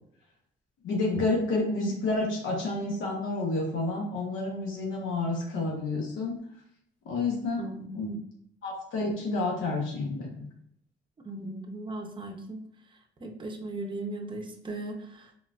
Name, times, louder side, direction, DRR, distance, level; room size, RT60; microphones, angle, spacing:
voice 1, 0.8-6.4 7.0-7.6 7.9-8.1 8.6-10.5, left 2 dB, 80° left, -1 dB, 0.8 m, -29 dB
voice 2, 7.6-8.2 11.2-12.6 13.2-15.3, right 2 dB, 25° right, 3 dB, 0.6 m, -38 dB
3.8 x 2.3 x 2.2 m, 0.71 s
cardioid pair, 90°, 20 cm